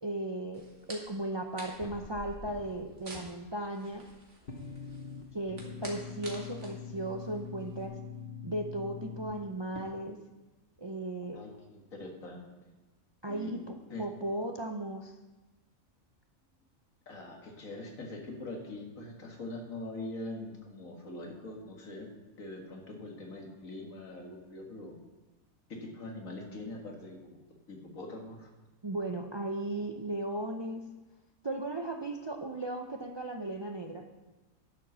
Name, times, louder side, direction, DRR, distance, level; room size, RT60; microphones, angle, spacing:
voice 1, 0.0-4.0 5.3-8.0 8.4-10.2 10.8-11.4 13.2-15.1 28.8-30.8 31.4-34.1, right 1 dB, 35° right, 4 dB, 0.4 m, -36 dB
sound 1, 0.5-7.9, right 2 dB, 60° right, 2.2 m, -50 dB
sound 2, 1.8-2.8 3.1-4.0 4.4-9.8, left 6 dB, 45° left, 1.2 m, -44 dB
voice 2, 11.3-12.4 13.2-13.5 13.9-14.0 17.1-22.1 22.4-25.0 25.7-28.5, left 2 dB, 75° left, 1 dB, 2.1 m, -43 dB
10.5 x 7.6 x 6.2 m, 1.1 s
omnidirectional pair, 1.4 m